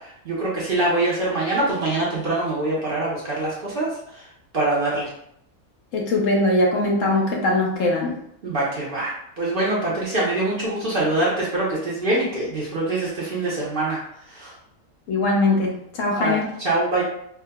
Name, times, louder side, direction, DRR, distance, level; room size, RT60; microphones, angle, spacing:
voice 1, 0.0-3.9 4.5-5.1 8.4-14.0 14.3-14.5 16.2-16.4 16.6-17.0, right 2 dB, 45° right, -6 dB, 0.8 m, -24 dB
voice 2, 5.9-8.2 15.1-16.5, left 2 dB, 65° left, -1 dB, 0.9 m, -21 dB
4.5 x 2.1 x 2.2 m, 0.73 s
omnidirectional pair, 1.5 m